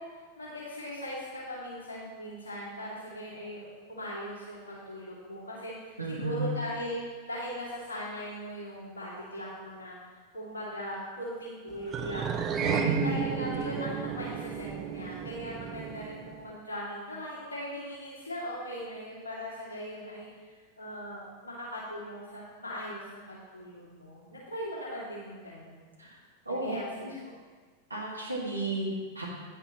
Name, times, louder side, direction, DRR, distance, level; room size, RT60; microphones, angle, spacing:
voice 1, 0.0-3.6 3.9-12.4 12.7-25.8 26.5-26.8 27.1-27.4, equal, 70° left, -7 dB, 2.5 m, -39 dB
voice 2, 6.0-6.5 12.6-13.2 26.0-26.2 26.5-26.8 27.9-29.3, right 2 dB, 85° right, -3 dB, 2.0 m, -33 dB
sound 1, 11.9-16.4, right 7 dB, 30° right, 0.8 m, -33 dB
10.0 x 9.9 x 3.1 m, 1.5 s
figure-of-eight pair, 90°, 0 cm